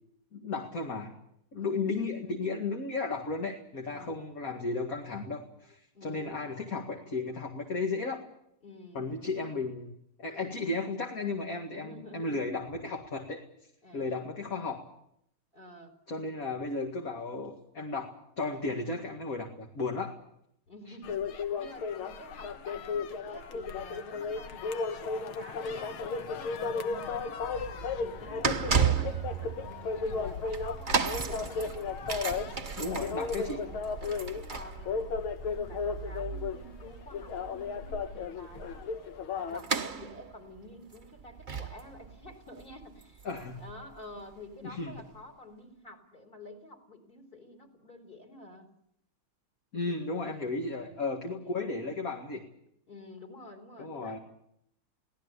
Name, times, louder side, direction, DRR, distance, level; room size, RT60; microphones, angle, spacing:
voice 1, 0.3-1.1 1.5-8.2 8.9-9.9 10.2-13.4 13.9-14.8 16.1-20.2 32.8-33.6 43.2-43.6 44.6-44.9 49.7-52.4 53.8-54.2, left 3 dB, 45° left, 2 dB, 2.4 m, -34 dB
voice 2, 1.5-1.9 3.9-4.2 5.9-6.4 8.6-9.6 11.7-12.5 13.8-14.3 15.5-15.9 20.7-21.3 21.6-27.4 28.0-31.7 32.3-35.1 35.4-38.9 39.3-43.3 43.6-48.7 50.6-51.7 52.9-54.2, left 1 dB, 25° left, 4 dB, 4.1 m, -49 dB
sound 1, 21.0-39.6, left 5 dB, 85° left, 2.0 m, -35 dB
sound 2, 27.4-44.3 45.0-45.1, right 6 dB, 30° right, 0.9 m, -35 dB
23.5 x 18.0 x 8.3 m, 0.73 s
omnidirectional pair, 2.2 m